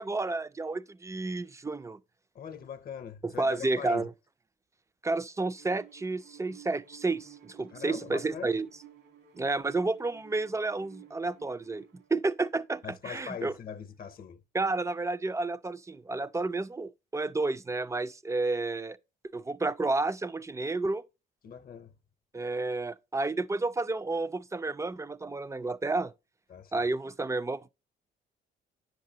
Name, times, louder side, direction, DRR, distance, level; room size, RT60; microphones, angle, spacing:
voice 1, 0.0-2.0 3.2-4.1 5.0-8.7 9.4-11.8 12.1-13.5 14.5-19.0 19.3-21.0 22.3-26.1 26.7-27.7, right 3 dB, 15° right, 0.3 m, -31 dB
voice 2, 2.3-4.1 7.7-8.5 12.8-14.4 21.4-21.9 26.5-26.8, left 7 dB, 50° left, 0.7 m, -41 dB
Bowed string instrument, 5.6-12.1, right 11 dB, 80° right, 1.7 m, -55 dB
10.0 x 6.5 x 2.7 m
cardioid pair, 90°, 20 cm